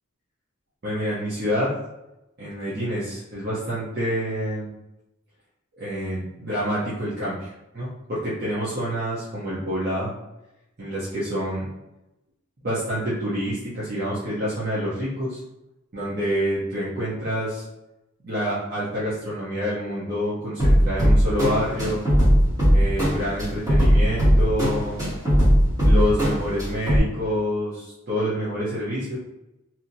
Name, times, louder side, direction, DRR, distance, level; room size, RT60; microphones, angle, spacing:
voice 1, 0.8-1.7 2.4-4.7 5.8-10.1 10.8-11.7 12.6-15.4 15.9-17.6 18.2-22.1 22.7-25.0 25.8-29.2, equal, 45° right, -10 dB, 0.8 m, -27 dB
sound 1, 20.6-27.0, equal, 20° right, 1.5 m, -19 dB
2.9 x 2.7 x 2.7 m, 0.93 s
head